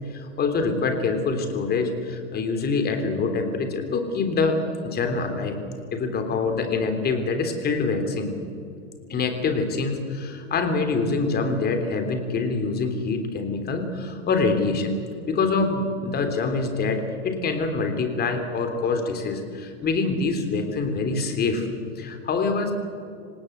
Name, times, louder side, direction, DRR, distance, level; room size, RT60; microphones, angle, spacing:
voice 1, 0.1-5.6 5.9-8.3 9.1-15.0 15.3-21.7 22.0-22.7, left 4 dB, 25° left, 6 dB, 3.4 m, -25 dB
26.0 x 18.5 x 8.1 m, 2.3 s
supercardioid pair, 140°, 40 cm